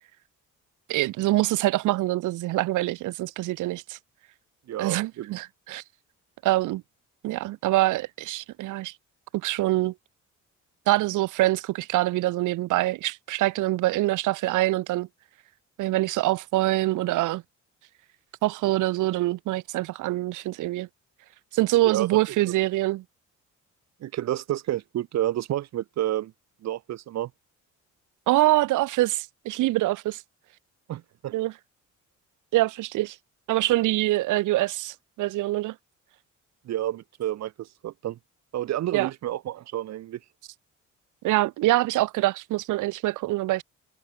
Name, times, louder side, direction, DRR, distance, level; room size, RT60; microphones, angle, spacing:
voice 1, 0.9-4.0 4.8-5.8 6.4-6.8 7.2-8.9 9.3-9.9 10.9-15.1 15.8-17.4 18.4-20.9 21.5-23.0 28.3-30.2 31.3-31.5 32.5-33.2 33.5-35.7 38.9-39.1 41.2-43.6, right 17 dB, 85° right, 1.0 m, -25 dB
voice 2, 4.7-5.4 21.8-22.2 22.5-22.6 24.0-26.3 26.6-27.3 30.9-31.3 36.6-38.2 38.5-40.2, right 13 dB, 60° right, 0.7 m, -30 dB
cardioid pair, 90°, 30 cm